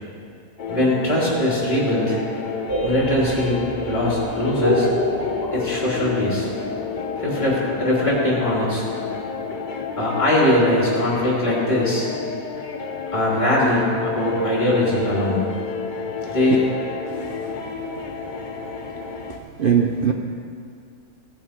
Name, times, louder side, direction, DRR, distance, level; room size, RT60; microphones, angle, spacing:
sound 1, 0.6-19.4, left 5 dB, 65° left, 0.4 m, -30 dB
voice 1, 0.7-2.2 2.8-3.6 3.8-4.9 5.5-6.5 7.2-8.8 10.0-12.1 13.1-15.4 16.3-16.7, left 1 dB, 20° left, -5 dB, 2.8 m, -21 dB
sound 2, 2.7-8.4, equal, 15° right, 0.8 m, -28 dB
voice 2, 19.2-20.1, right 7 dB, 80° right, 3 dB, 0.4 m, -22 dB
16.5 x 7.4 x 5.1 m, 2.3 s
omnidirectional pair, 1.7 m